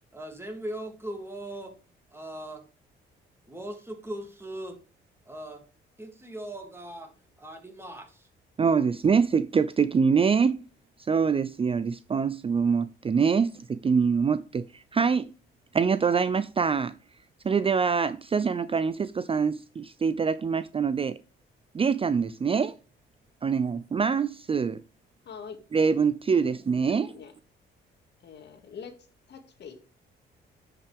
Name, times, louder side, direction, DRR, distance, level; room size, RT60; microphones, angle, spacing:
voice 1, 0.1-1.7 2.1-2.6 3.5-4.8 5.3-5.6 6.0-7.1 7.4-8.3, right 1 dB, 10° right, 2.5 m, -39 dB
voice 2, 8.6-10.6 11.0-15.3 15.7-16.9 17.4-21.2 21.7-22.7 23.4-24.8 25.7-27.1, right 6 dB, 30° right, 0.5 m, -25 dB
voice 3, 25.2-25.6 26.4-26.5 26.9-27.3 28.2-28.9 29.3-29.7, left 6 dB, 60° left, 2.0 m, -44 dB
10.5 x 5.7 x 3.5 m
cardioid pair, 90°, 20 cm